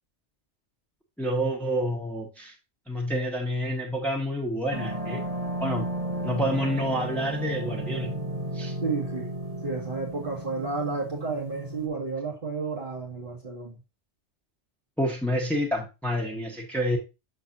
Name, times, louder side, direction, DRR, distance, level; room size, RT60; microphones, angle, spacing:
voice 1, 1.2-2.5 2.9-5.3 5.6-5.9 6.2-8.2 8.5-8.8 15.0-17.0, equal, ahead, 1.3 m, -28 dB
sound 1, 4.7-11.9, right 1 dB, 35° right, 1.1 m, -34 dB
voice 2, 8.8-9.3 9.6-13.8, right 4 dB, 50° right, 2.2 m, -31 dB
7.7 x 6.1 x 2.7 m
omnidirectional pair, 1.2 m